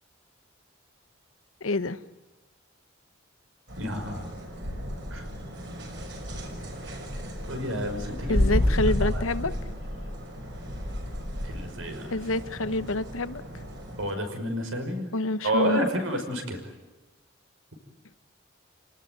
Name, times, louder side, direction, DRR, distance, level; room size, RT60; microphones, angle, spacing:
voice 1, 1.6-2.0 8.3-9.5 12.1-13.4 15.1-15.8, left 2 dB, 85° left, 13 dB, 1.0 m, -27 dB
sound 1, 3.7-14.1, left 1 dB, 60° right, 6.1 m, -32 dB
voice 2, 3.8-4.3 5.1-5.2 7.5-8.7 9.0-9.6 11.4-12.1 14.0-15.1 15.4-16.6, equal, 85° right, 6 dB, 5.8 m, -30 dB
30.0 x 19.0 x 9.5 m, 1.1 s
head